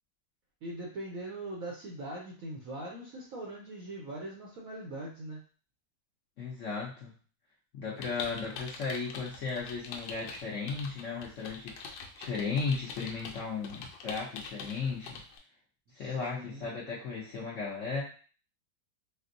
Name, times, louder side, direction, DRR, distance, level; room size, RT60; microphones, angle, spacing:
voice 1, 0.6-5.4 15.9-16.7, right 1 dB, 70° right, -2 dB, 0.8 m, -41 dB
voice 2, 6.4-7.1 7.7-15.2 15.9-18.0, left 4 dB, 60° left, -6 dB, 0.8 m, -35 dB
sound 1, 8.0-15.4, left 5 dB, 80° left, 1.3 m, -44 dB
4.3 x 2.0 x 2.5 m, 0.39 s
omnidirectional pair, 2.0 m